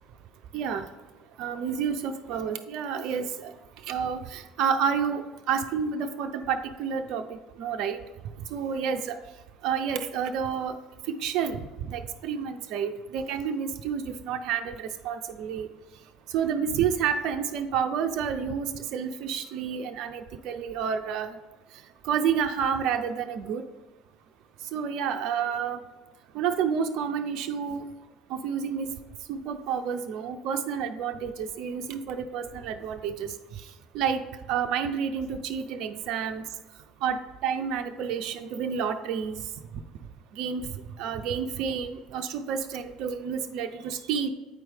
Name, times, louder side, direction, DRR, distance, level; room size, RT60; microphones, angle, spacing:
voice 1, 0.5-0.9 1.4-3.5 3.9-7.2 7.6-8.0 8.5-9.2 9.6-10.7 11.1-11.6 11.9-15.7 16.3-21.3 22.0-23.6 24.7-25.8 26.3-27.8 28.3-28.9 29.3-33.3 33.9-34.2 34.5-36.4 37.0-39.4 40.4-40.6 41.0-44.3, right 7 dB, 60° right, 7 dB, 0.4 m, -29 dB
8.1 x 4.6 x 3.4 m, 1.2 s
figure-of-eight pair, 60°, 0 cm